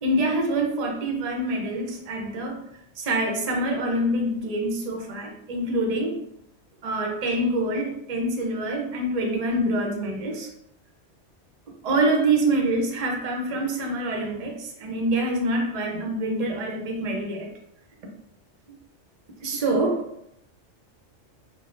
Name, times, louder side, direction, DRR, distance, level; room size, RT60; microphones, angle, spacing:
voice 1, 0.0-2.6 3.0-6.2 6.8-10.5 11.8-17.5 19.4-20.0, right 1 dB, 50° right, 0.5 m, -25 dB
3.3 x 2.1 x 2.4 m
omnidirectional pair, 1.2 m